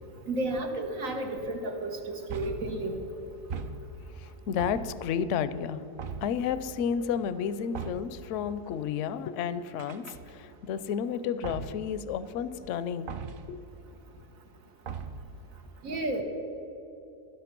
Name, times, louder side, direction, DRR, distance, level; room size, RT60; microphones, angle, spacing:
voice 1, 0.3-2.9 15.8-16.2, right 2 dB, 85° right, 2 dB, 1.6 m, -32 dB
sound 1, 2.3-2.8 3.5-4.1 4.6-5.2 6.0-6.5 7.7-8.2 9.8-10.6 11.4-11.9 13.1-13.6 14.9-15.4, right 5 dB, 55° right, 0.6 m, -39 dB
voice 2, 4.2-5.8 6.2-13.2 13.5-13.6, left 7 dB, 75° left, 14 dB, 0.9 m, -31 dB
11.5 x 11.0 x 5.9 m, 3.0 s
omnidirectional pair, 1.4 m